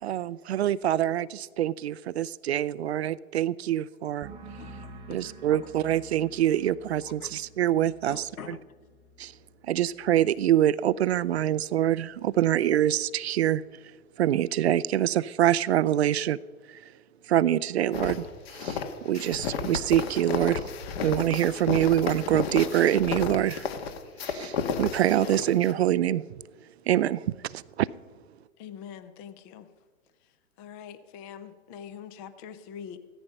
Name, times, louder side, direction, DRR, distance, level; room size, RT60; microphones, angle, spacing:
voice 1, 0.0-4.3 5.1-8.2 9.2-9.3 9.7-13.6 14.2-16.4 16.7-16.8 17.3-18.3 18.5-20.6 21.0-23.7 24.2-26.2 26.9-27.9, right 12 dB, 50° right, 19 dB, 0.5 m, -25 dB
sound 1, 4.2-11.7 12.0-12.5, right 2 dB, 10° right, 1.3 m, -50 dB
voice 2, 4.6-5.7 7.0-7.3 8.1-8.8, left 7 dB, 75° left, 14 dB, 1.1 m, -45 dB
sound 2, 17.9-25.7, left 6 dB, 45° left, 1.6 m, -32 dB
voice 3, 28.6-29.7 30.6-33.0, left 8 dB, 15° left, 13 dB, 0.4 m, -43 dB
16.0 x 13.5 x 5.3 m, 1.5 s
hypercardioid pair, 120°, 43 cm